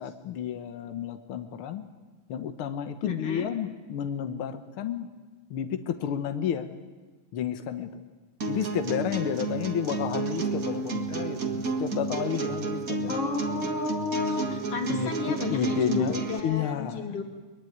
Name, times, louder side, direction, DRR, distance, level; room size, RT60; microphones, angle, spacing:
voice 1, 0.0-1.8 2.3-5.1 5.5-6.7 7.3-8.0 8.5-13.2 13.6-13.7 14.9-16.2 16.4-17.2, left 9 dB, 70° left, 9 dB, 1.3 m, -31 dB
voice 2, 3.0-3.5 13.1-17.2, left 3 dB, 45° left, 4 dB, 3.5 m, -33 dB
sound 1, 8.4-16.4, right 4 dB, 35° right, 1.6 m, -31 dB
23.0 x 21.0 x 9.5 m, 1.3 s
omnidirectional pair, 3.8 m